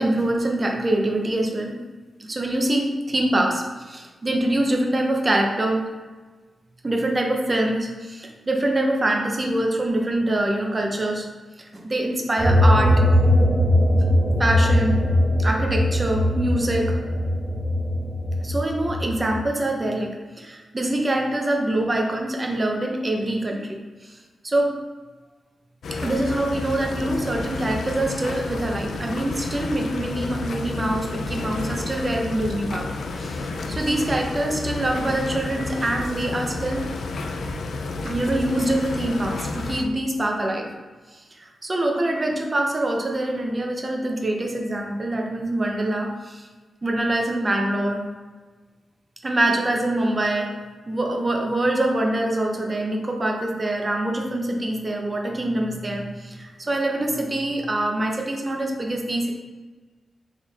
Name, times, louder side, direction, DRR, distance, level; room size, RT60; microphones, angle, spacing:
voice 1, 0.0-1.8 2.2-5.9 6.8-11.3 11.7-13.0 14.4-15.0 15.4-17.0 18.4-24.2 24.4-24.8 26.0-33.4 33.7-36.9 38.0-40.7 41.4-46.5 46.8-48.0 49.2-50.5 50.9-59.3, right 1 dB, 25° right, 1 dB, 0.5 m, -24 dB
sound 1, 12.4-19.3, left 1 dB, 70° right, 1.2 m, -20 dB
sound 2, 25.8-39.8, left 3 dB, 80° left, 0.3 m, -31 dB
4.0 x 3.5 x 2.4 m, 1.3 s
wide cardioid pair, 150°, 0 cm